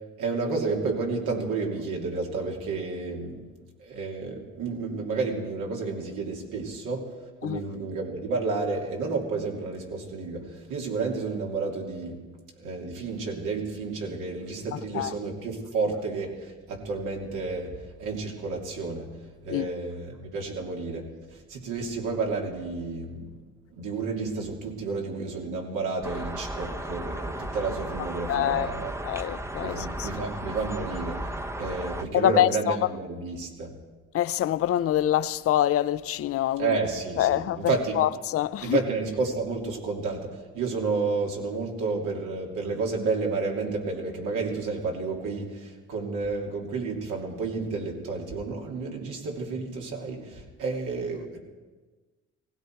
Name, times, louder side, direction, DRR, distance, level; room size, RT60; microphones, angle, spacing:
voice 1, 0.2-3.4 3.8-7.1 7.4-12.2 12.6-17.7 18.0-19.1 19.4-21.1 21.3-23.3 23.7-29.0 29.6-33.7 36.6-38.0 38.6-51.4, right 4 dB, 85° right, 3.0 m, -31 dB
voice 2, 14.7-15.1 19.5-19.7 28.0-28.7 29.0-30.1 32.1-33.0 34.1-36.8 37.2-38.9, left 12 dB, 50° left, 0.5 m, -26 dB
sound 1, 26.0-32.1, right 1 dB, 10° right, 0.7 m, -35 dB
18.5 x 16.0 x 4.6 m
cardioid pair, 90°, 30 cm